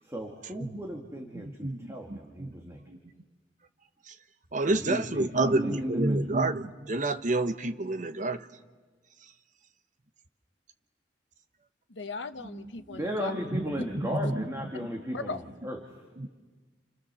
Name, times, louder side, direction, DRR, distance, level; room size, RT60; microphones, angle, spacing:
voice 1, 0.0-3.0 4.6-6.4 12.9-16.0, equal, 15° right, 1 dB, 2.2 m, -36 dB
voice 2, 1.6-2.5 2.9-3.0 4.1-4.2 4.5-8.5 12.9-13.0 14.1-14.3 16.2-16.3, right 2 dB, 45° right, 9 dB, 1.0 m, -28 dB
voice 3, 11.9-13.3 14.2-14.3 15.1-15.4, left 3 dB, 75° left, 9 dB, 1.1 m, -37 dB
29.0 x 29.0 x 7.0 m, 1.4 s
head